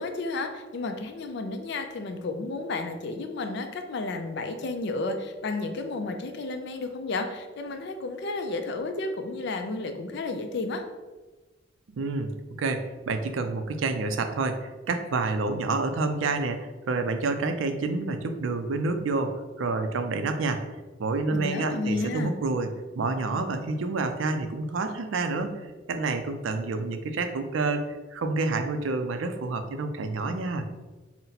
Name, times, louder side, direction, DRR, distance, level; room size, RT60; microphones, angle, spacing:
voice 1, 0.0-10.8 21.3-22.3, left 3 dB, 60° left, 6 dB, 0.4 m, -32 dB
voice 2, 11.9-12.3 12.6-20.6 21.0-22.7 22.9-27.8 28.1-30.6, right 3 dB, 80° right, 8 dB, 0.4 m, -28 dB
4.1 x 2.1 x 3.9 m, 1.2 s
head